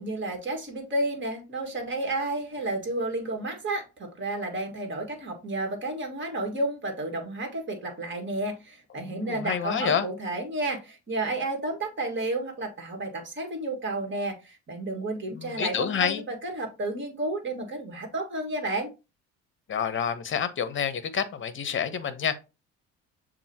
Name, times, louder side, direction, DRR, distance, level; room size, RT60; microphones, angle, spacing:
voice 1, 0.0-18.9, right 2 dB, 35° right, 1.8 m, -31 dB
voice 2, 9.0-10.1 15.3-16.2 19.7-22.4, left 8 dB, 40° left, 0.8 m, -28 dB
7.1 x 2.6 x 2.8 m
hypercardioid pair, 70°, 32 cm